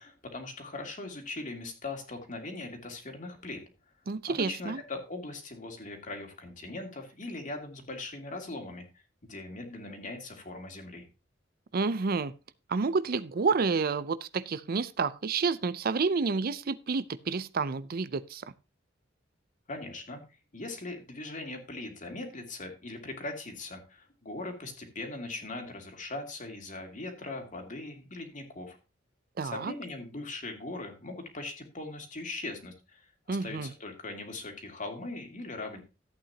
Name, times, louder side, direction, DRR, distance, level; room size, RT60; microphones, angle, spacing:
voice 1, 0.0-3.6 4.3-8.9 9.3-11.1 19.7-20.2 20.5-28.8 29.4-35.8, left 2 dB, 45° left, 2.6 m, -40 dB
voice 2, 4.1-4.8 11.7-12.3 12.7-18.5 29.4-29.7 33.3-33.7, right 4 dB, 50° right, 0.5 m, -29 dB
14.0 x 8.7 x 2.8 m
head